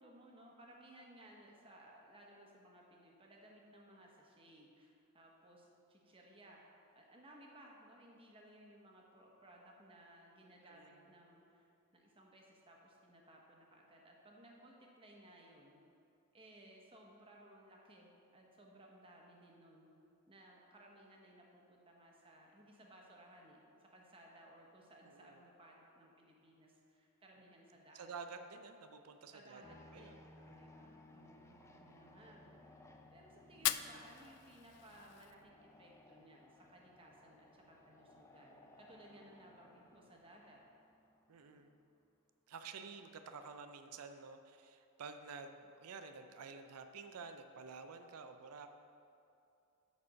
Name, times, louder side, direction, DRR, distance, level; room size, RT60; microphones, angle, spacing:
voice 1, 0.0-6.6 6.9-15.8 16.3-19.9 20.3-28.1 29.3-30.2 30.5-40.6 41.4-41.7, right 1 dB, 25° right, -1 dB, 1.1 m, -60 dB
voice 2, 10.6-11.1 25.0-25.4 27.9-29.6 29.9-30.7 41.3-41.7 42.5-48.7, right 5 dB, 85° right, 8 dB, 0.5 m, -51 dB
sound 1, 29.6-41.7, left 2 dB, 10° left, 0.4 m, -62 dB
Fire, 33.5-35.5, left 14 dB, 90° left, 0.3 m, -40 dB
8.7 x 4.2 x 6.3 m, 2.7 s
head